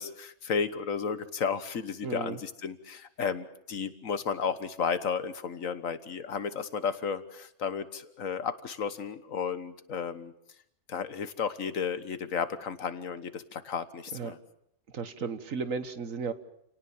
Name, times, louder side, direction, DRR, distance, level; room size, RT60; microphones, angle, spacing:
voice 1, 0.0-10.3 10.9-14.4, left 6 dB, 85° left, 12 dB, 1.7 m, -33 dB
voice 2, 2.0-2.4 14.1-14.3 14.9-16.3, right 5 dB, 85° right, 11 dB, 1.8 m, -34 dB
29.0 x 18.5 x 7.2 m, 0.74 s
omnidirectional pair, 1.4 m